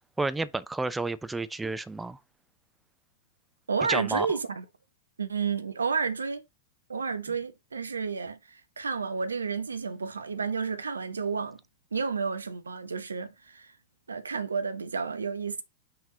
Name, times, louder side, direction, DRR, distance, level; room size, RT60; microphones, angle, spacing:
voice 1, 0.2-2.2 3.9-4.3, right 3 dB, 10° right, 0.5 m, -31 dB
voice 2, 3.7-4.6 5.2-6.4 6.9-11.6 11.9-13.7 14.1-15.6, right 5 dB, 80° right, 0.9 m, -31 dB
5.9 x 4.4 x 3.7 m
figure-of-eight pair, 100°, 0 cm